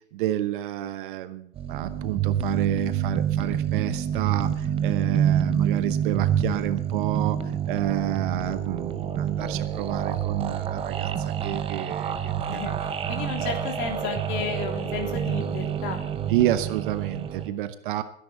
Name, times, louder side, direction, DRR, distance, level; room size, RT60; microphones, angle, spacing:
voice 1, 0.1-7.4 7.7-12.6 16.3-18.0, right 13 dB, 45° right, 12 dB, 1.0 m, -29 dB
sound 1, 1.6-17.5, right 8 dB, 15° right, 0.8 m, -27 dB
voice 2, 12.5-16.0, left 5 dB, 35° left, 3 dB, 3.5 m, -33 dB
21.5 x 10.5 x 4.3 m, 0.70 s
hypercardioid pair, 130°, 36 cm